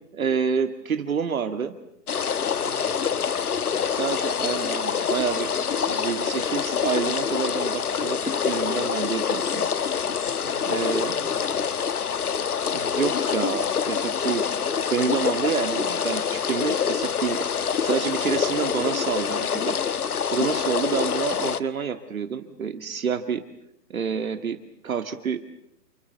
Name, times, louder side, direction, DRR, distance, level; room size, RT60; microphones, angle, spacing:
voice 1, 0.1-1.7 4.0-5.5 5.9-9.7 10.7-11.1 12.7-14.4 14.9-19.8 20.1-23.4 23.9-24.6 24.8-25.4, right 6 dB, 55° right, 8 dB, 2.0 m, -28 dB
sound 1, 2.1-21.6, left 7 dB, 65° left, 1.5 m, -26 dB
voice 2, 2.6-3.8 10.0-11.7 18.1-18.5, right 3 dB, 5° right, -5 dB, 7.7 m, -47 dB
29.0 x 28.0 x 6.8 m, 0.78 s
hypercardioid pair, 175°, 48 cm